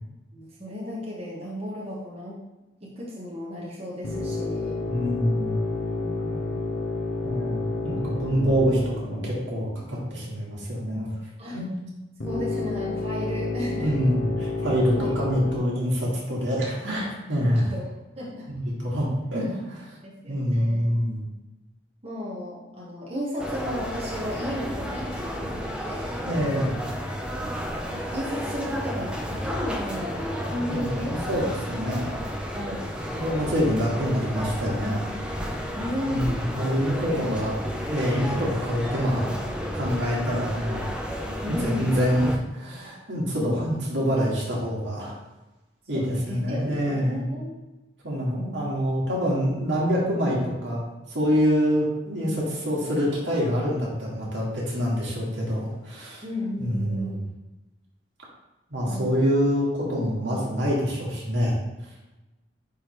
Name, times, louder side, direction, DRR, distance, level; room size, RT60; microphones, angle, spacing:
voice 1, 0.3-2.4 2.8-4.8 6.0-6.6 8.1-8.2 11.4-11.6 12.2-13.9 14.6-14.7 14.9-15.1 17.4-17.9 18.2-18.5 20.0-21.0 22.0-26.2 27.4-31.1 32.5-32.9 35.7-36.6 37.0-37.5 41.4-42.0 45.9-47.5 48.4-48.5 56.2-57.3 58.9-59.2, equal, 35° right, -6 dB, 1.2 m, -34 dB
sound 1, 4.0-10.3 12.2-15.6, left 2 dB, 85° left, 0.8 m, -30 dB
voice 2, 4.9-5.6 7.2-11.1 11.5-11.7 13.8-17.7 18.5-20.0 20.3-21.2 26.2-26.7 30.7-32.4 33.1-35.0 36.1-39.3 39.7-40.9 41.3-45.2 45.9-47.3 48.0-50.8 51.1-56.2 56.6-57.2 58.7-61.6, equal, 80° right, -5 dB, 2.0 m, -26 dB
sound 2, 23.4-42.4, equal, 5° right, 0.5 m, -32 dB
9.8 x 3.3 x 3.1 m, 1.0 s
head